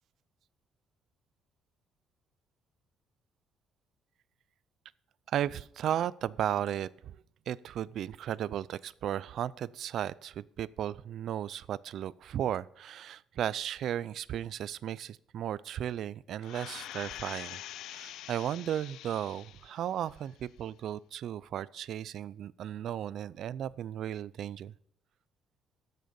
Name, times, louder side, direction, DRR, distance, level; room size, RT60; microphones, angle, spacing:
voice 1, 5.3-7.2 7.5-17.6 17.9-24.7, right 10 dB, 55° right, 20 dB, 0.4 m, -35 dB
sound 1, 16.4-19.8 20.3-20.4, left 13 dB, 70° left, 0.3 m, -45 dB
14.5 x 6.7 x 5.2 m, 0.70 s
cardioid pair, 160°, 0 cm